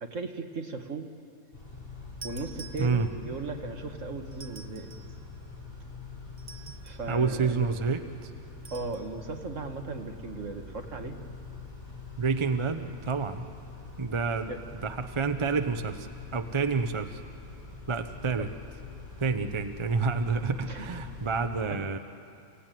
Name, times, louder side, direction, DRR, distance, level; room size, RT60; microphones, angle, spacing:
voice 1, 0.0-1.1 2.2-4.9 6.8-7.8 8.7-11.2 14.5-14.6 18.3-18.5 20.6-21.1 21.7-21.8, right 3 dB, 60° right, 5 dB, 1.9 m, -37 dB
Car / Idling / Accelerating revving vroom, 1.5-21.4, left 4 dB, 40° left, 6.5 m, -44 dB
sound 1, 2.2-3.4 4.3-5.2 6.4-7.1 8.6-9.1, right 4 dB, 45° right, 1.1 m, -48 dB
voice 2, 7.1-8.3 12.2-13.5 14.0-14.5 14.8-16.1 16.3-17.2 17.9-18.5 19.2-22.0, right 4 dB, 25° right, 8 dB, 0.7 m, -28 dB
29.5 x 17.0 x 9.2 m, 2.5 s
omnidirectional pair, 1.5 m